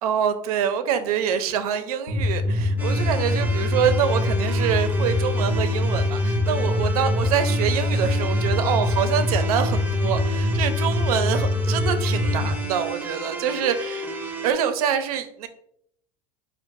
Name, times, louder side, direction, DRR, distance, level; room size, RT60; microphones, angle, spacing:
voice 1, 0.0-14.0 14.4-15.5, right 8 dB, 85° right, 9 dB, 0.5 m, -25 dB
sound 1, 2.1-12.5, left 2 dB, 50° left, 0.9 m, -23 dB
sound 2, 2.8-14.5, right 1 dB, 10° right, 0.6 m, -33 dB
3.9 x 2.4 x 3.4 m, 0.71 s
supercardioid pair, 105°, 18 cm